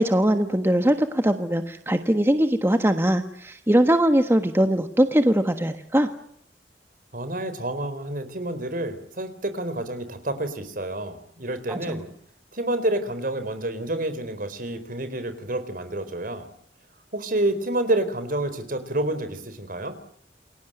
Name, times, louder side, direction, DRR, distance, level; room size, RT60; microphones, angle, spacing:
voice 1, 0.0-6.1 11.7-12.0, right 1 dB, 15° right, 8 dB, 1.4 m, -21 dB
voice 2, 7.1-12.1 12.5-16.5 17.1-19.9, right 1 dB, 55° right, 11 dB, 4.3 m, -28 dB
28.5 x 22.5 x 9.1 m, 0.65 s
head